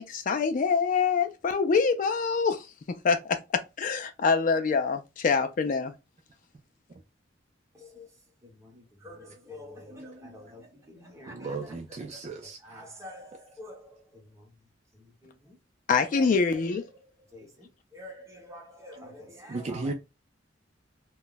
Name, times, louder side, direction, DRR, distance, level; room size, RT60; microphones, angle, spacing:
voice 1, 0.0-5.9 15.9-16.8, left 5 dB, 45° left, 0.4 m, -25 dB
voice 2, 7.7-8.2 8.4-11.8 12.1-14.6 14.9-15.6 16.1-19.9, left 1 dB, 15° right, 1.0 m, -48 dB
voice 3, 11.3-12.8 19.5-19.9, right 3 dB, 35° right, 0.4 m, -35 dB
2.2 x 2.1 x 3.8 m
head